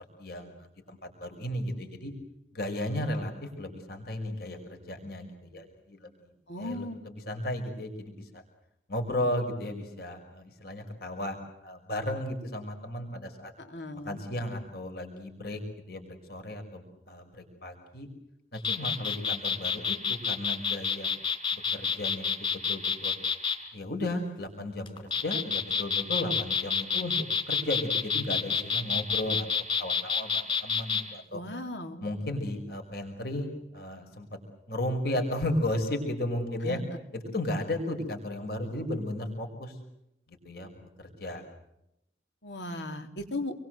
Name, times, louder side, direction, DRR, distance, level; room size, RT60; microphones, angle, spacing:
voice 1, 0.2-2.1 2.5-6.3 6.6-8.4 8.9-13.5 14.0-15.6 15.9-18.1 18.5-21.1 21.5-23.1 23.7-27.1 27.5-29.5 29.8-31.4 32.0-33.5 33.7-34.4 34.7-36.8 37.1-39.8 40.3-41.4, left 1 dB, 60° left, 4 dB, 5.8 m, -34 dB
voice 2, 6.5-7.0 13.7-14.2 31.3-32.0 36.6-36.8 42.4-43.5, left 1 dB, 80° left, 5 dB, 3.7 m, -36 dB
sound 1, 18.5-23.6 24.9-31.0, left 6 dB, 30° left, 4.8 m, -28 dB
28.0 x 23.5 x 7.9 m, 0.83 s
head